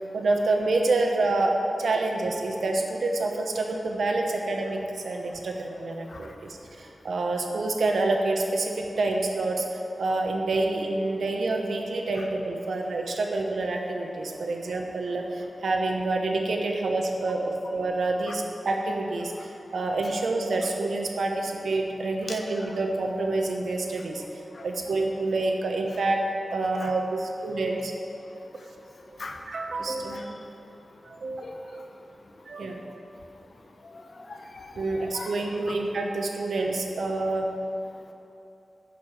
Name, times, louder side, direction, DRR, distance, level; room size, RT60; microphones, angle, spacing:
voice 1, 0.1-1.5 1.8-24.2 24.6-26.2 26.5-27.9 29.5-30.3 31.1-31.4 31.7-31.8 32.5-32.7 34.8-37.5, right 2 dB, 85° right, 2 dB, 1.0 m, -27 dB
voice 2, 5.7-6.2 18.3-18.4 22.3-22.7 24.5-24.6 26.8-26.9 29.2-29.4 30.1-30.2 31.4-31.5 34.2-35.4 35.7-35.8, left 3 dB, 60° left, 3 dB, 1.0 m, -40 dB
11.0 x 5.4 x 6.6 m, 2.9 s
wide cardioid pair, 90°, 0 cm